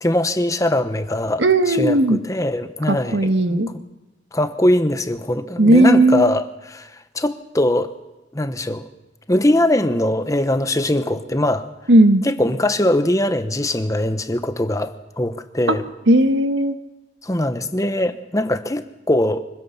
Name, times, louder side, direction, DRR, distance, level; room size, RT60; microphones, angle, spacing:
voice 1, 0.0-3.6 4.3-6.9 7.1-7.9 8.3-8.8 9.3-11.7 12.2-15.9 17.2-19.4, left 1 dB, 20° left, 10 dB, 1.1 m, -21 dB
voice 2, 1.4-2.2 2.9-3.7 5.6-6.3 11.9-12.2 15.7-15.8 16.1-16.7, right 1 dB, 85° right, 9 dB, 1.5 m, -15 dB
25.0 x 15.5 x 7.2 m, 1.0 s
head